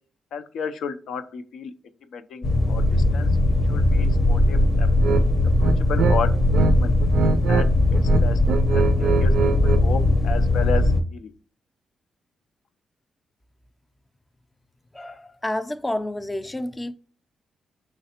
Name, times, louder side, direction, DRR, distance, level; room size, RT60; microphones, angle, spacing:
voice 1, 0.3-1.7 2.1-3.3 3.7-5.2 5.6-6.3 6.7-6.9 7.5-8.4 8.7-9.3 9.6-10.8 11.1-11.3, left 6 dB, 80° left, 0.4 m, -32 dB
sound 1, 2.4-11.0, left 1 dB, 60° left, 0.8 m, -19 dB
sound 2, 5.0-5.2 5.6-6.7 7.0-7.7 7.9-9.9, right 6 dB, 85° right, 0.3 m, -23 dB
voice 2, 14.9-16.9, left 1 dB, 15° left, 0.4 m, -29 dB
5.7 x 3.2 x 2.8 m
cardioid pair, 75°, 0 cm